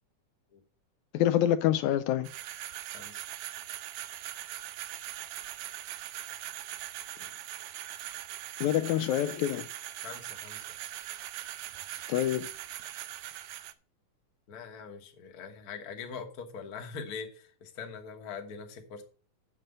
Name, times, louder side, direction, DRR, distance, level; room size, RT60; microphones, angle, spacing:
voice 1, 1.1-2.3 8.6-9.6 12.1-12.5, left 12 dB, 80° left, 1.8 m, -26 dB
sound 1, 2.2-13.7, right 13 dB, 80° right, 1.9 m, -41 dB
voice 2, 10.0-10.7 14.5-19.0, left 5 dB, 45° left, 1.2 m, -42 dB
7.4 x 6.7 x 6.5 m
omnidirectional pair, 3.4 m